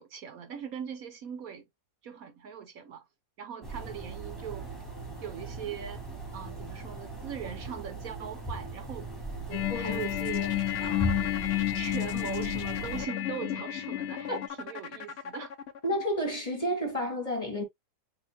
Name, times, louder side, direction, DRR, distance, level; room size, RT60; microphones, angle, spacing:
voice 1, 0.0-1.7 2.0-3.1 3.4-4.7 5.2-6.1 6.3-9.1 9.5-11.3 11.7-15.5, right 8 dB, 65° right, 1.1 m, -40 dB
sound 1, 3.6-13.1, right 2 dB, ahead, 2.3 m, -39 dB
sound 2, 9.5-14.5, left 16 dB, 90° left, 1.2 m, -31 dB
voice 2, 9.7-10.0 14.3-14.4 15.8-17.6, equal, 25° left, 1.7 m, -31 dB
sound 3, 9.8-16.0, left 9 dB, 60° left, 0.6 m, -40 dB
7.9 x 2.9 x 2.2 m
omnidirectional pair, 1.7 m